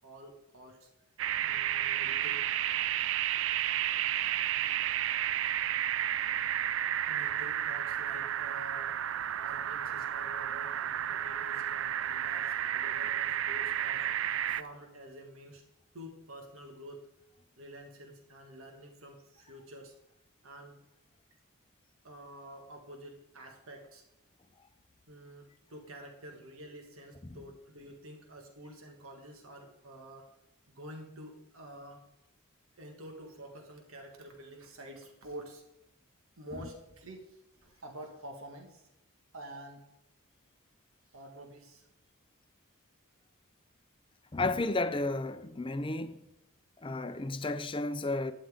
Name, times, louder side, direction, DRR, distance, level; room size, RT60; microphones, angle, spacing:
voice 1, 0.0-0.9 1.4-2.5 7.1-9.0 9.4-14.1 14.6-15.6 15.9-17.1 17.6-19.9 20.4-20.8 22.0-24.0 25.1-30.3 30.7-32.0 32.8-35.6 36.4-38.9 39.3-39.9 41.1-41.9, right 1 dB, 75° right, 1.7 m, -48 dB
sound 1, 1.2-14.6, right 11 dB, 60° right, 0.3 m, -32 dB
voice 2, 44.3-46.2 46.8-48.3, left 2 dB, 25° left, 0.5 m, -32 dB
11.5 x 10.0 x 3.7 m
head